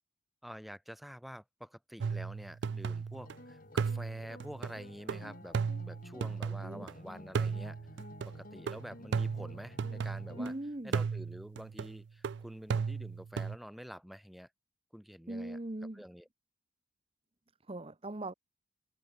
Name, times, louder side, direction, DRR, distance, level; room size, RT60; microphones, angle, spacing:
voice 1, 0.4-5.6 5.9-7.8 8.2-10.5 10.8-14.5 14.9-15.6 15.9-16.3, equal, ahead, 3.0 m, -48 dB
sound 1, 2.0-3.3 3.8-6.9 7.3-10.5 10.9-13.6, right 5 dB, 60° right, 0.4 m, -36 dB
sound 2, 3.1-10.5, left 1 dB, 45° left, 2.1 m, -52 dB
voice 2, 10.4-11.0 15.3-16.0 17.7-18.3, right 1 dB, 30° right, 1.0 m, -40 dB
head